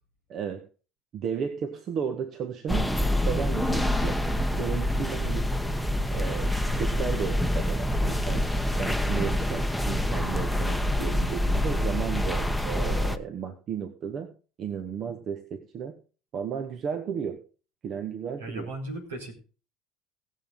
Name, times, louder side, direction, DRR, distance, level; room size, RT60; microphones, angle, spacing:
voice 1, 0.3-0.7 1.1-5.5 6.1-8.5 8.8-14.3 14.6-16.0 16.3-17.4 17.8-18.7, right 7 dB, 45° right, 8 dB, 1.3 m, -34 dB
sound 1, 2.7-13.2, left 1 dB, ahead, 1.0 m, -26 dB
voice 2, 18.4-19.4, right 1 dB, 75° right, 2 dB, 4.1 m, -36 dB
18.5 x 7.6 x 3.7 m, 0.35 s
figure-of-eight pair, 65°, 0 cm